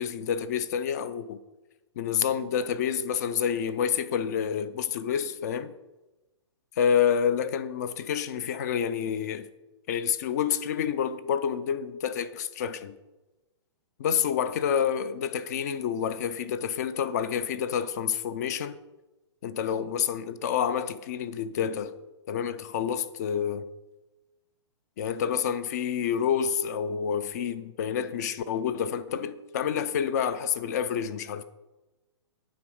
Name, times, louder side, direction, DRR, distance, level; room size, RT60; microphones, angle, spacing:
voice 1, 0.0-1.4 2.0-5.7 6.8-9.5 9.9-13.0 14.0-18.8 19.4-21.9 22.3-23.7 25.0-31.4, left 8 dB, 35° left, 0.4 m, -28 dB
9.2 x 3.9 x 6.3 m
hypercardioid pair, 165°, 15 cm